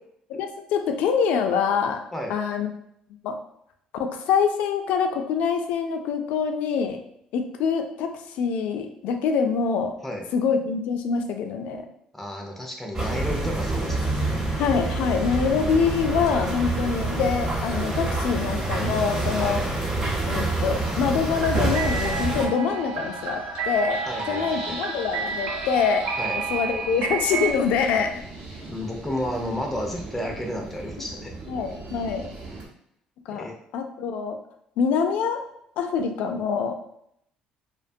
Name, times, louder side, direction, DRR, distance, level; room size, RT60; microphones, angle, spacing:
voice 1, 0.4-2.0 2.3-2.7 3.2-3.4 4.0-7.0 7.3-9.9 10.3-11.9 14.6-19.6 20.3-26.1 26.5-28.1 31.5-32.3 33.3-33.5 33.7-34.4 34.8-35.4 35.8-36.8, left 6 dB, 75° left, 5 dB, 0.3 m, -25 dB
voice 2, 12.1-14.4 19.4-19.6 24.1-24.8 26.2-26.4 28.7-31.4 33.3-33.6, left 1 dB, 5° left, 1 dB, 0.4 m, -32 dB
sound 1, 12.9-22.5, right 2 dB, 25° right, 0.8 m, -26 dB
sound 2, 21.3-27.5, right 5 dB, 80° right, 0.4 m, -30 dB
sound 3, 21.4-32.7, right 2 dB, 65° right, 0.8 m, -41 dB
2.4 x 2.2 x 2.6 m, 0.74 s
cardioid pair, 125°, 2 cm